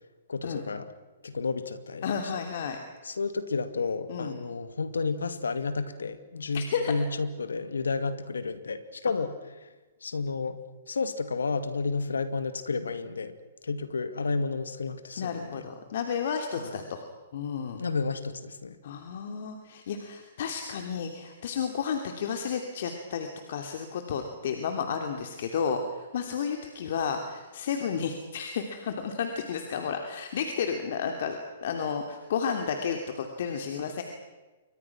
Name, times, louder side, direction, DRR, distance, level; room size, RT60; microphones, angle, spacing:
voice 1, 0.3-0.9 1.2-2.2 3.0-9.3 9.6-9.7 10.0-10.6 10.9-13.3 13.6-15.6 16.6-16.8 17.8-18.8, left 4 dB, 85° left, 11 dB, 2.2 m, -31 dB
voice 2, 2.0-2.8 4.1-4.4 6.5-6.9 15.2-17.0 17.3-17.8 18.8-34.0, left 6 dB, 60° left, 5 dB, 2.9 m, -32 dB
29.0 x 24.5 x 6.1 m, 1.2 s
hypercardioid pair, 130°, 0 cm